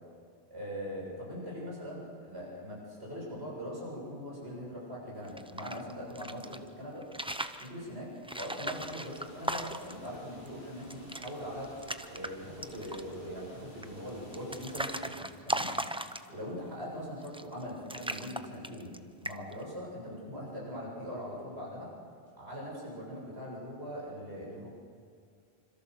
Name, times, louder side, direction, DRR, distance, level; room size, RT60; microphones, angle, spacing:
voice 1, 0.5-7.1 7.6-11.7 12.1-15.7 16.3-18.9 19.2-21.9 22.4-24.7, equal, 85° right, -4 dB, 7.5 m, -41 dB
sound 1, 5.2-6.6 7.0-7.7 8.2-10.1 10.5-10.6 10.8-11.3 11.6-12.3 12.6-13.1 13.8-16.5 17.2-17.6 17.9-19.0 19.2-19.6, right 1 dB, 5° right, 0.6 m, -37 dB
sound 2, 8.7-15.1, equal, 60° left, 7.8 m, -53 dB
26.0 x 26.0 x 6.4 m, 2.3 s
omnidirectional pair, 1.1 m